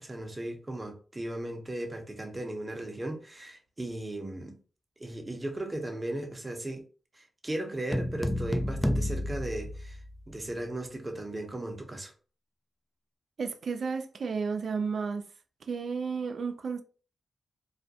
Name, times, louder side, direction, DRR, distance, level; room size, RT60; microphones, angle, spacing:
voice 1, 0.0-4.6 5.0-6.8 7.1-10.0 10.3-12.1, right 1 dB, 30° right, 0.7 m, -36 dB
sound 1, 7.9-10.5, left 1 dB, 10° left, 0.3 m, -31 dB
voice 2, 13.4-15.2 15.7-16.8, right 5 dB, 65° right, 0.3 m, -32 dB
2.4 x 2.1 x 2.6 m
supercardioid pair, 45°, 0 cm